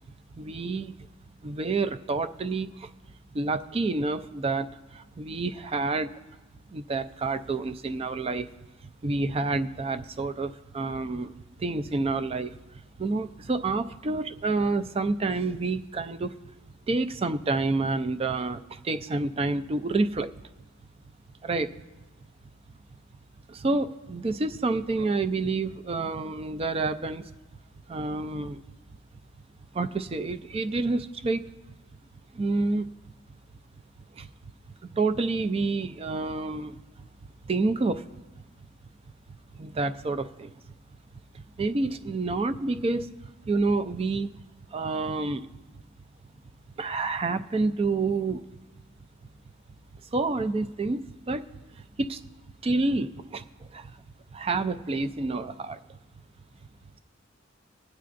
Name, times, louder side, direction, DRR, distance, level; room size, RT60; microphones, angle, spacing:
voice 1, 0.4-1.0 1.4-2.9 3.3-6.1 6.7-8.5 9.0-11.3 11.6-12.6 13.0-16.3 16.9-20.3 21.4-21.7 23.5-27.2 27.9-28.6 29.7-31.4 32.3-32.9 34.2-34.3 35.0-36.8 37.4-38.0 39.6-40.5 41.6-43.1 43.4-44.3 44.7-45.5 46.8-48.4 50.1-51.5 52.0-52.2 52.6-53.9 54.3-55.8, right 3 dB, 30° right, 11 dB, 0.4 m, -28 dB
22.0 x 9.3 x 2.5 m, 1.1 s
head